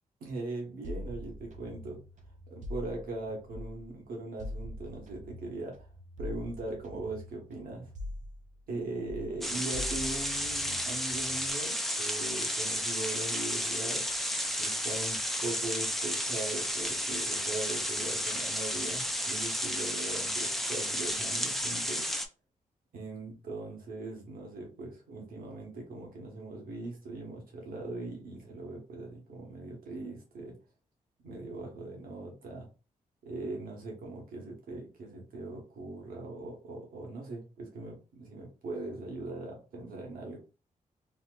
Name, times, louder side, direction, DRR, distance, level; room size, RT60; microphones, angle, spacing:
voice 1, 0.2-2.0 2.5-5.9 6.2-7.9 8.7-14.1 14.6-22.1 22.9-30.5 31.2-32.7 33.2-40.4, right 2 dB, 80° right, 0 dB, 1.1 m, -40 dB
sound 1, 0.8-3.9 4.4-8.8 9.1-11.5, left 1 dB, 60° right, 0.7 m, -44 dB
sound 2, 9.4-22.3, equal, ahead, 0.5 m, -32 dB
4.2 x 2.1 x 2.3 m, 0.33 s
cardioid pair, 55°, 15 cm